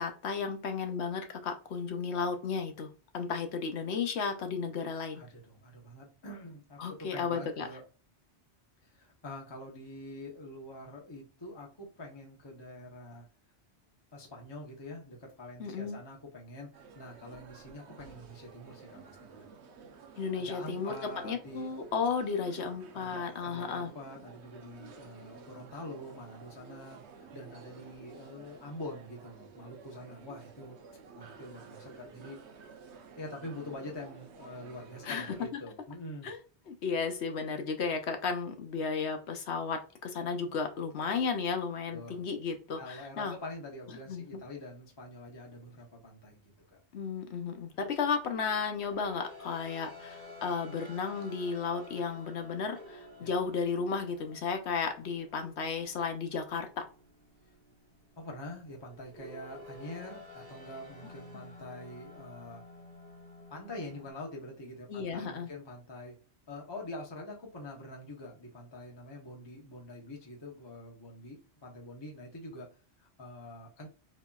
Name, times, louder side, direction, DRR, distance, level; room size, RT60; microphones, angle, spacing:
voice 1, 0.0-5.2 6.8-7.7 15.6-16.0 20.2-23.9 35.0-35.3 36.2-36.4 36.7-43.3 44.1-44.4 46.9-56.8 64.9-65.5, left 5 dB, 75° left, 6 dB, 1.1 m, -34 dB
voice 2, 5.1-7.8 8.8-13.3 14.1-19.5 20.3-21.7 22.9-30.8 31.1-32.4 33.2-36.3 41.9-42.2 42.8-46.8 53.2-53.3 58.2-62.6 63.5-66.2 66.5-73.9, left 1 dB, 25° left, -1 dB, 1.0 m, -45 dB
sound 1, 16.7-35.5, right 5 dB, 75° right, 1.0 m, -52 dB
sound 2, 47.7-64.1, left 2 dB, 50° right, 1.3 m, -51 dB
6.3 x 2.9 x 2.4 m, 0.35 s
omnidirectional pair, 1.2 m